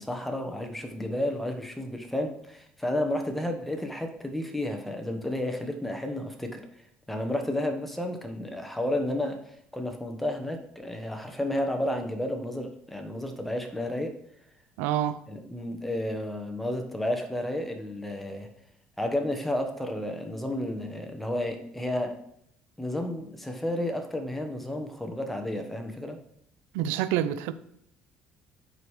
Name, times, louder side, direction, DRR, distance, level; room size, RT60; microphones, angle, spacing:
voice 1, 0.0-6.6 7.1-14.1 15.3-18.5 19.0-22.2 22.8-26.2, left 1 dB, 5° left, 1.1 m, -31 dB
voice 2, 14.8-15.2 26.7-27.5, right 11 dB, 90° right, 0.4 m, -27 dB
8.9 x 4.9 x 3.2 m
cardioid pair, 105°, 4 cm